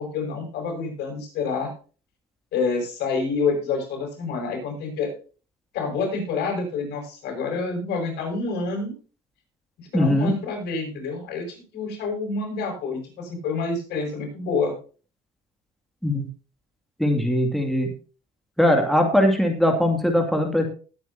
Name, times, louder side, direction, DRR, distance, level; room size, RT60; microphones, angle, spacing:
voice 1, 0.0-1.7 2.5-5.1 5.7-8.9 9.8-14.7, left 4 dB, 80° left, 2 dB, 7.0 m, -28 dB
voice 2, 9.9-10.3 16.0-16.2 17.0-17.9 18.6-20.7, left 1 dB, ahead, 2 dB, 2.5 m, -20 dB
19.5 x 9.1 x 2.8 m, 0.36 s
cardioid pair, 110°, 17 cm